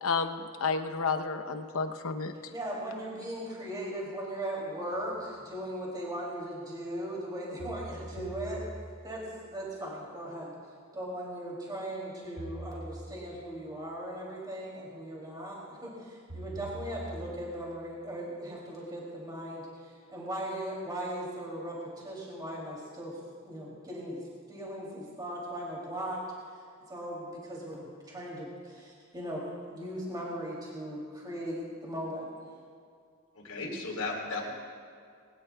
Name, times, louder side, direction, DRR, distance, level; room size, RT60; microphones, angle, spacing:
voice 1, 0.0-2.3, left 4 dB, 70° left, 7 dB, 0.9 m, -31 dB
voice 2, 2.5-8.7 9.0-10.5 10.9-26.2 26.9-32.3, right 1 dB, 20° right, -4 dB, 2.9 m, -38 dB
sound 1, 4.9-5.0 7.6-9.2 12.4-13.4 16.3-17.6, right 1 dB, 70° right, 2.6 m, -43 dB
voice 3, 33.3-34.5, left 3 dB, 90° left, -2 dB, 3.8 m, -35 dB
21.5 x 18.5 x 2.3 m, 2.2 s
head